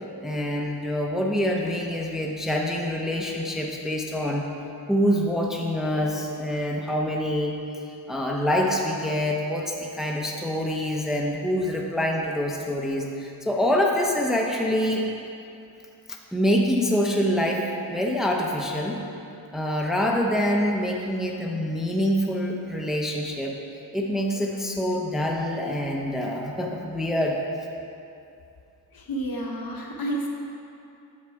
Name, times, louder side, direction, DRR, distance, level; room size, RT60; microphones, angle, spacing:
voice 1, 0.2-4.5 4.9-7.5 8.1-15.0 16.3-17.6 17.9-19.0 19.5-23.6 23.9-27.4, equal, ahead, -1 dB, 0.7 m, -25 dB
voice 2, 28.9-30.3, right 1 dB, 60° left, 0 dB, 1.2 m, -30 dB
8.5 x 6.6 x 4.6 m, 2.7 s
wide cardioid pair, 115°, 40 cm